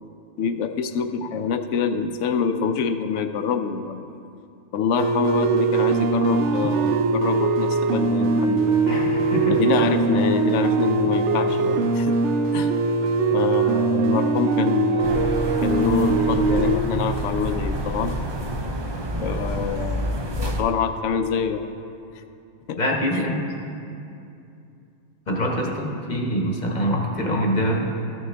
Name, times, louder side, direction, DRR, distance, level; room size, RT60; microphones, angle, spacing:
voice 1, 0.4-4.1 4.7-8.8 9.5-12.2 12.5-12.7 13.3-18.2 19.2-21.6 22.1-22.2 22.7-22.8, left 6 dB, 80° left, 8 dB, 0.9 m, -25 dB
sound 1, 5.0-16.8, right 4 dB, 75° right, 0.9 m, -21 dB
voice 2, 8.9-9.6 22.8-23.5 25.3-27.8, equal, 40° left, 0 dB, 1.1 m, -24 dB
sound 2, 15.0-20.6, right 1 dB, 35° right, 0.4 m, -28 dB
14.5 x 6.3 x 3.4 m, 2.6 s
omnidirectional pair, 1.3 m